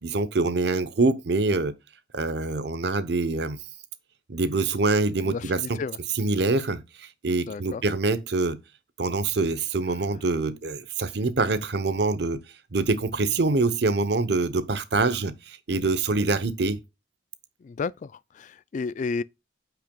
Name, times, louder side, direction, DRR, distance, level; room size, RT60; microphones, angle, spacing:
voice 1, 0.0-1.7 2.1-3.6 4.3-5.8 6.2-8.6 9.0-12.4 12.7-16.8, right 3 dB, 65° right, 0.8 m, -25 dB
voice 2, 5.2-6.0 7.5-7.8 17.6-19.2, left 4 dB, 45° left, 0.3 m, -32 dB
8.8 x 5.8 x 2.3 m
head